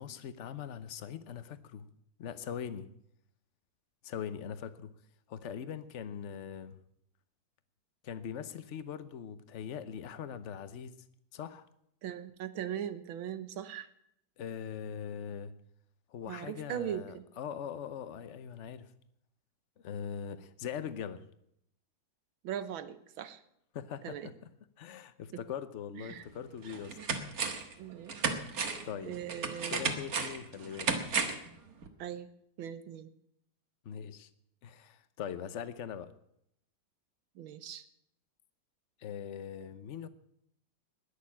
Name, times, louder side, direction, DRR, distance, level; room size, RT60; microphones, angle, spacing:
voice 1, 0.0-1.9 2.2-2.9 4.0-4.9 5.3-6.7 8.0-10.9 11.3-11.7 14.4-15.5 16.1-18.9 19.8-21.2 23.7-24.2 24.8-27.0 28.8-29.1 29.7-30.9 33.8-34.3 34.6-36.1 39.0-40.1, left 8 dB, 50° left, 13 dB, 0.9 m, -41 dB
voice 2, 12.0-13.9 16.3-17.3 22.4-23.4 24.0-24.3 25.9-26.3 27.0-27.1 27.8-28.1 29.0-29.9 32.0-32.3 32.6-33.1 37.4-37.8, right 9 dB, 80° right, 13 dB, 1.8 m, -39 dB
sound 1, 26.1-26.2 26.6-27.7 28.1-31.5 31.8-31.9, right 4 dB, 50° right, 1.8 m, -34 dB
20.0 x 6.8 x 8.7 m, 0.75 s
omnidirectional pair, 2.2 m